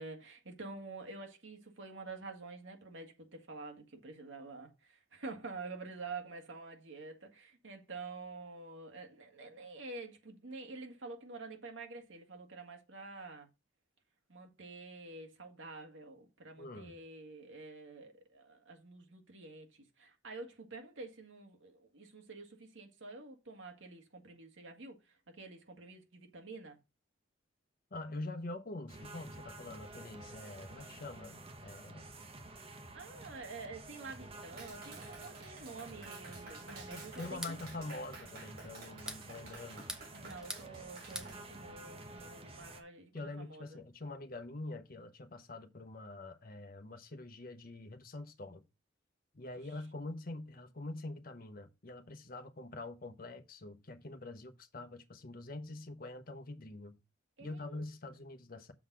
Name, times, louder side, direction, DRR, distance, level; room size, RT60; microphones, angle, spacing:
voice 1, 0.0-13.5 14.3-26.8 32.9-37.6 40.1-43.8 57.4-57.9, right 3 dB, 85° right, 1.9 m, -48 dB
voice 2, 16.6-17.0 27.9-32.1 36.9-39.9 43.1-48.6 49.3-57.0 57.4-58.7, left 2 dB, 50° left, 0.9 m, -45 dB
sound 1, 28.9-42.8, right 2 dB, 30° right, 1.1 m, -50 dB
Clapping, 34.6-41.4, right 3 dB, 60° right, 3.7 m, -53 dB
sound 2, 37.2-37.6 38.8-39.3 39.7-40.7 40.9-41.3, equal, 5° right, 0.9 m, -43 dB
7.0 x 4.0 x 6.1 m
head